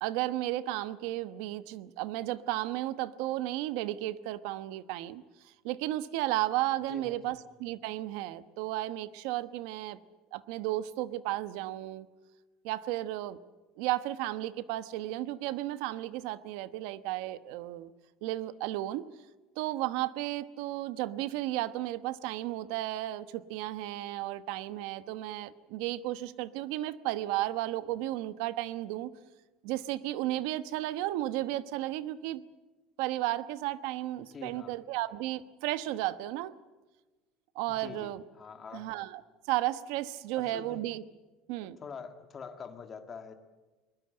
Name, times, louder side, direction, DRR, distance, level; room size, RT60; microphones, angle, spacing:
voice 1, 0.0-5.2 5.6-10.0 10.3-12.1 12.6-13.4 13.8-17.9 18.2-19.1 19.6-29.1 29.6-32.4 33.0-36.5 37.5-38.2 38.7-39.2 39.5-41.0 41.5-41.8, right 15 dB, 70° right, 13 dB, 1.0 m, -33 dB
voice 2, 34.2-34.7 37.7-38.9 40.3-40.8 41.6-43.3, left 5 dB, 25° left, 6 dB, 1.8 m, -45 dB
22.5 x 20.5 x 7.8 m, 1.2 s
cardioid pair, 170°, 0 cm